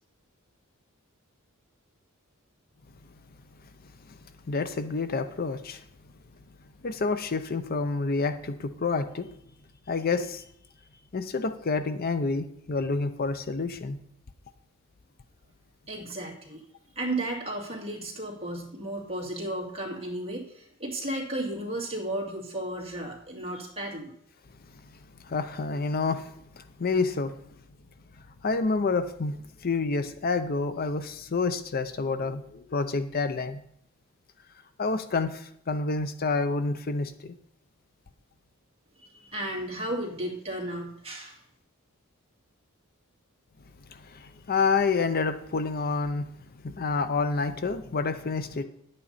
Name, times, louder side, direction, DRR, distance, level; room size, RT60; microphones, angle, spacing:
voice 1, 4.5-5.8 6.8-9.3 9.9-10.4 11.1-14.0 25.2-27.3 28.4-33.6 34.8-37.3 43.9-46.3 46.6-48.6, left 4 dB, 45° left, 10 dB, 0.6 m, -28 dB
voice 2, 15.9-16.6 17.0-24.1 39.0-41.4, right 1 dB, 30° right, -1 dB, 2.4 m, -34 dB
10.5 x 8.7 x 4.1 m, 0.70 s
head